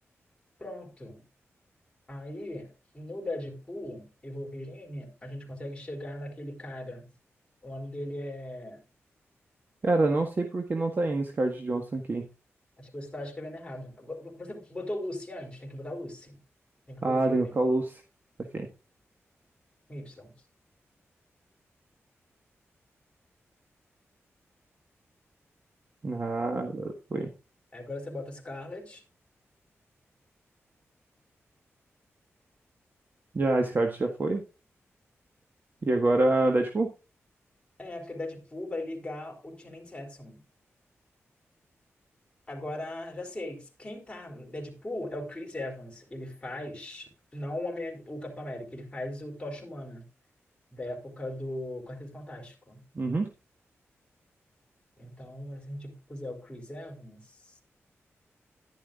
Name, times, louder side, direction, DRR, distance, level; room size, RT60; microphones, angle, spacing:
voice 1, 0.6-1.2 2.1-7.1 7.6-8.8 12.8-16.4 16.9-17.6 19.9-20.4 27.7-29.0 37.8-40.4 42.5-50.1 50.7-52.9 55.0-57.4, left 1 dB, 20° left, 3.9 m, -39 dB
voice 2, 9.8-12.3 17.0-17.9 18.5-18.7 26.0-27.3 33.3-34.4 35.8-36.9 52.9-53.3, right 2 dB, 45° right, 1.5 m, -26 dB
11.0 x 10.5 x 2.5 m
wide cardioid pair, 90°, 5 cm